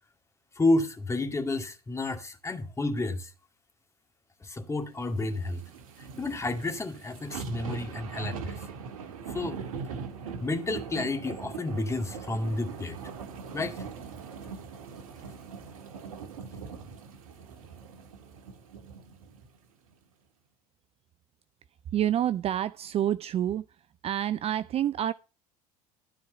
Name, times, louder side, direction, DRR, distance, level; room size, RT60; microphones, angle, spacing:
voice 1, 0.6-3.3 4.4-5.6 6.2-8.6 9.3-9.6 10.4-13.0 13.5-13.8, left 2 dB, 15° left, 2.2 m, -30 dB
sound 1, 5.0-19.5 19.9-20.0, right 6 dB, 65° right, 1.7 m, -41 dB
voice 2, 21.9-23.8 24.0-25.1, right 11 dB, 30° right, 0.5 m, -28 dB
13.0 x 4.6 x 6.8 m
figure-of-eight pair, 65°, 19 cm